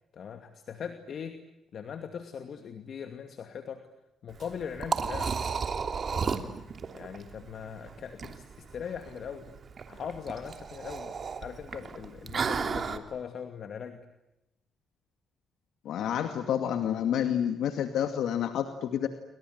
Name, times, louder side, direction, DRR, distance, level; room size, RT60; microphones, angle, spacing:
voice 1, 0.1-1.4 1.7-3.8 4.2-5.4 6.1-6.6 6.9-9.6 9.9-14.1, left 7 dB, 60° left, 7 dB, 2.5 m, -40 dB
Liquid, 4.3-13.0, right 5 dB, 45° right, 3.0 m, -34 dB
voice 2, 15.9-19.1, left 9 dB, 75° left, 7 dB, 2.2 m, -29 dB
29.5 x 25.0 x 8.0 m, 0.91 s
cardioid pair, 90°, 0 cm